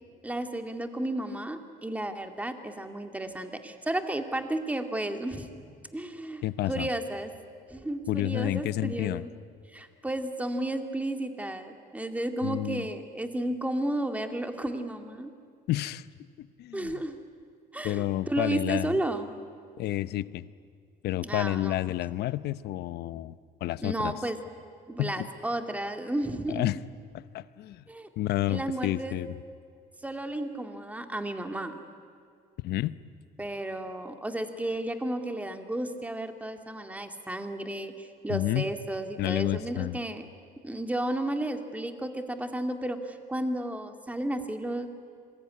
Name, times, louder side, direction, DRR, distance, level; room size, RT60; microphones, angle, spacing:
voice 1, 0.2-5.5 5.9-7.3 7.7-9.3 9.7-15.3 16.7-17.2 17.7-19.3 21.2-21.8 23.8-24.4 24.9-26.7 27.9-28.1 28.5-29.2 30.0-31.8 33.4-40.3 40.6-44.9, right 1 dB, 10° right, 6 dB, 2.2 m, -33 dB
voice 2, 6.4-6.9 8.1-9.2 12.4-12.9 15.7-16.0 16.6-17.0 17.8-18.9 19.8-20.5 21.0-24.1 25.0-25.3 26.5-26.8 27.1-27.8 28.2-29.3 32.6-32.9 38.3-38.7 39.2-40.0, left 15 dB, 75° left, 16 dB, 0.8 m, -30 dB
27.5 x 22.0 x 9.7 m, 2.3 s
cardioid pair, 110°, 17 cm